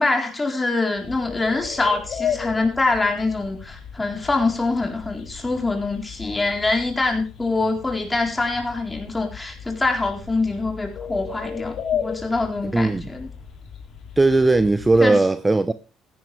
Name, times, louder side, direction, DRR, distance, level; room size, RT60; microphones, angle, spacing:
voice 1, 0.0-13.3 15.0-15.2, left 3 dB, 15° left, 4.2 m, -24 dB
sound 1, 1.0-15.1, left 8 dB, 55° left, 2.9 m, -35 dB
voice 2, 12.7-13.1 14.2-15.7, right 2 dB, 15° right, 0.8 m, -18 dB
16.0 x 10.5 x 3.4 m
supercardioid pair, 90°, 0 cm